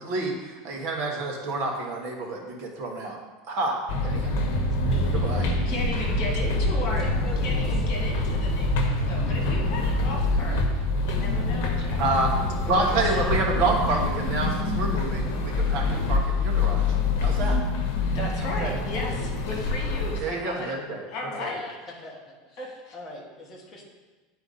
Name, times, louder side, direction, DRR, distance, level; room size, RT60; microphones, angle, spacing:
voice 1, 0.0-3.2 3.5-4.3 5.2-5.4 12.0-12.3 12.7-16.9 17.2-17.6 18.6-18.7 20.2-21.0 21.4-21.5, right 3 dB, 40° right, -1 dB, 1.3 m, -28 dB
sound 1, 3.9-20.2, left 2 dB, 60° left, 1.1 m, -25 dB
Bowed string instrument, 4.8-11.0, right 1 dB, 15° right, 0.6 m, -35 dB
voice 2, 4.9-5.3 5.7-5.8 6.6-7.9 12.9-13.8 21.1-21.2 21.5-21.8 22.0-23.8, left 2 dB, 15° left, -3 dB, 1.2 m, -41 dB
voice 3, 5.7-7.1 7.4-10.6 11.1-12.0 18.1-20.7 21.1-21.6 22.6-22.9, left 1 dB, 45° left, -1 dB, 2.0 m, -35 dB
9.1 x 4.6 x 4.0 m, 1.3 s
supercardioid pair, 175°, 0 cm